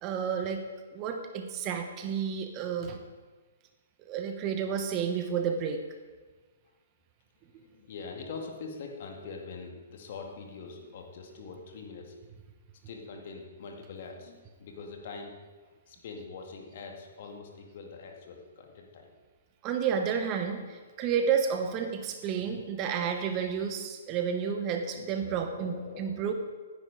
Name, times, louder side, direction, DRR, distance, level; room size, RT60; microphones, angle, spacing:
voice 1, 0.0-0.7 0.9-3.0 4.0-5.8 19.6-26.3, right 7 dB, 30° right, 6 dB, 1.2 m, -31 dB
voice 2, 7.6-12.1 12.9-15.3 15.9-19.1 25.2-26.3, left 4 dB, 50° left, 2 dB, 2.2 m, -43 dB
16.5 x 9.8 x 3.9 m, 1.4 s
figure-of-eight pair, 120°, 0 cm